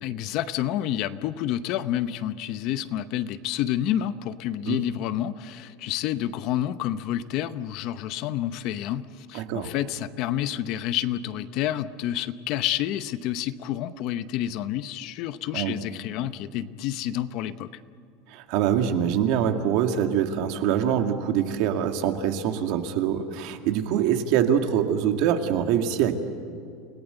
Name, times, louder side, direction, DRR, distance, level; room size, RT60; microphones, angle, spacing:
voice 1, 0.0-17.7, left 12 dB, 40° left, 13 dB, 0.8 m, -29 dB
voice 2, 9.3-9.7 15.5-15.8 18.3-26.2, right 9 dB, 50° right, 6 dB, 2.1 m, -24 dB
29.5 x 18.5 x 8.1 m, 2.5 s
supercardioid pair, 175°, 0 cm